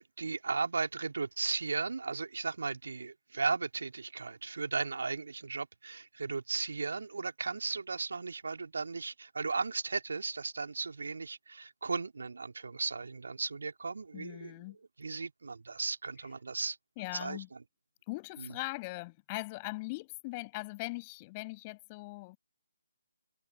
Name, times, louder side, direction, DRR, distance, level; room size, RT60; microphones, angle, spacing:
voice 1, 0.0-14.5 15.0-16.8 17.1-17.6 18.4-18.5, right 4 dB, 60° right, 3.3 m, -36 dB
voice 2, 14.1-14.8 17.0-17.5 18.1-22.4, left 24 dB, 20° left, 6.7 m, -40 dB
figure-of-eight pair, 145°, 0 cm